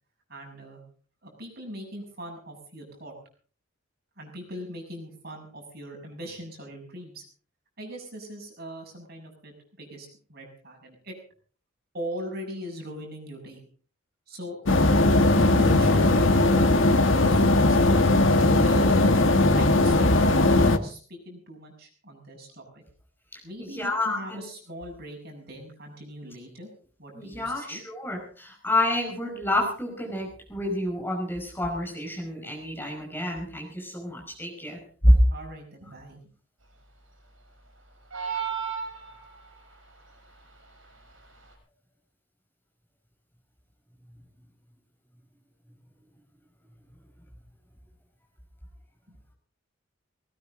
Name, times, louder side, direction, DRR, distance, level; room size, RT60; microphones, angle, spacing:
voice 1, 0.3-0.8 1.2-3.1 4.2-7.2 7.8-11.1 11.9-13.6 14.3-14.7 15.3-17.9 18.6-19.1 19.5-22.8 23.4-26.7 27.0-27.8 35.3-36.2 49.1-49.2, equal, 50° right, 2 dB, 6.8 m, -40 dB
sound 1, 14.7-20.8, left 2 dB, 70° left, 1.5 m, -19 dB
voice 2, 23.6-24.4 27.1-35.1, left 1 dB, 10° left, 0 dB, 5.4 m, -28 dB
sound 2, 38.1-39.6, right 7 dB, 65° right, 5.6 m, -32 dB
19.5 x 18.0 x 3.9 m, 0.42 s
head